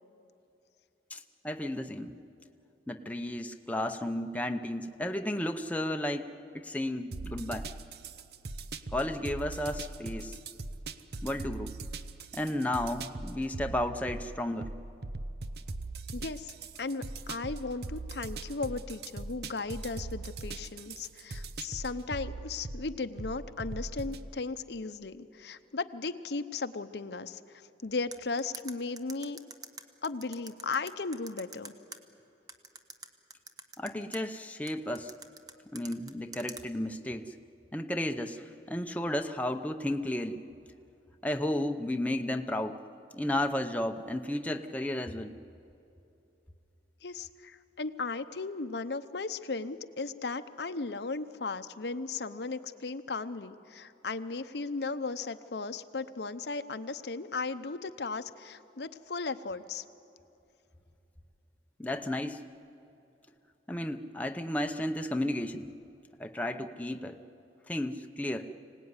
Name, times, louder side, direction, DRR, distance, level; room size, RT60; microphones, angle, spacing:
voice 1, 1.1-2.2 2.9-7.7 8.9-10.4 11.2-11.8 12.3-14.7 33.8-35.1 35.7-37.4 37.7-40.4 41.2-42.8 43.1-45.4 61.8-62.4 63.7-65.7 66.2-67.2 67.7-68.5, left 1 dB, 10° left, 5 dB, 0.7 m, -33 dB
sound 1, 7.1-24.3, right 3 dB, 65° right, 0.8 m, -41 dB
voice 2, 16.1-16.5 16.8-29.4 30.0-31.7 47.0-59.8, left 3 dB, 75° left, 10 dB, 0.8 m, -36 dB
sound 2, 28.1-32.0 32.5-34.2 34.7-36.6, right 4 dB, 20° right, 1.0 m, -44 dB
25.5 x 18.0 x 9.7 m, 2.8 s
head